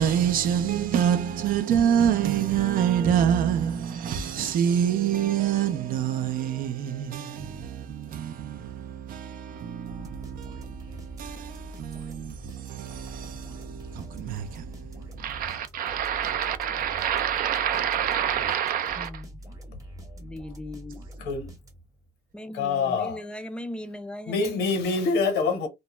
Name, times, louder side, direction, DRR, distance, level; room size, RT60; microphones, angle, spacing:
voice 1, 0.0-19.1, right 9 dB, 55° right, 0.5 m, -27 dB
sound 1, 9.9-22.1, equal, 20° right, 0.8 m, -44 dB
voice 2, 19.0-19.4 20.2-21.0 22.3-24.6, left 1 dB, 5° left, 0.4 m, -38 dB
voice 3, 21.2-21.5 22.5-23.2 24.3-25.7, left 4 dB, 75° left, 1.0 m, -25 dB
2.3 x 2.1 x 2.9 m
cardioid pair, 110°, 17 cm